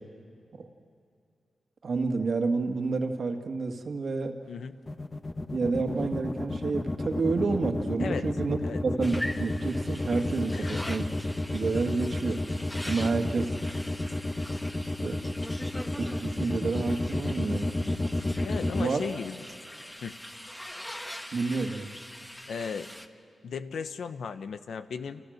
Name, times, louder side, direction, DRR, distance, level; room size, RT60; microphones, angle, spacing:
voice 1, 1.8-4.4 5.5-8.6 8.8-11.1 11.5-13.5 14.8-15.2 15.6-17.7 18.8-19.0 21.3-21.9, right 4 dB, 60° right, 5 dB, 2.1 m, -29 dB
voice 2, 4.5-4.8 8.0-8.3 8.6-8.8 10.5-11.0 18.4-19.5 20.0-20.2 22.5-22.9 23.4-25.3, left 6 dB, 85° left, 10 dB, 1.0 m, -36 dB
sound 1, 4.9-18.8, left 2 dB, 30° left, 1.3 m, -31 dB
sound 2, 9.0-23.1, equal, 10° left, 1.6 m, -42 dB
30.0 x 26.5 x 6.6 m, 2.6 s
cardioid pair, 70°, 0 cm